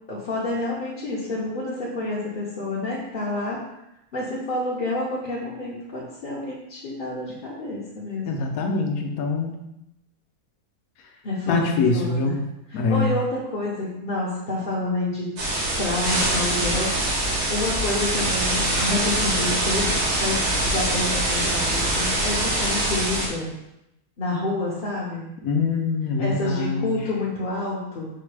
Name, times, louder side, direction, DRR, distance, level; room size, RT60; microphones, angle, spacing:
voice 1, 0.1-3.6 4.1-8.3 11.2-12.3 12.7-15.3 15.8-19.9 20.2-23.5 24.2-25.2 26.2-28.1, left 2 dB, 45° left, -6 dB, 0.7 m, -28 dB
voice 2, 8.3-9.6 11.5-12.4 12.7-13.1 25.4-26.9, left 4 dB, 75° left, 3 dB, 1.1 m, -24 dB
sound 1, 15.4-23.3, right 1 dB, 90° right, 1.5 m, -24 dB
4.8 x 2.1 x 4.7 m, 0.88 s
omnidirectional pair, 1.6 m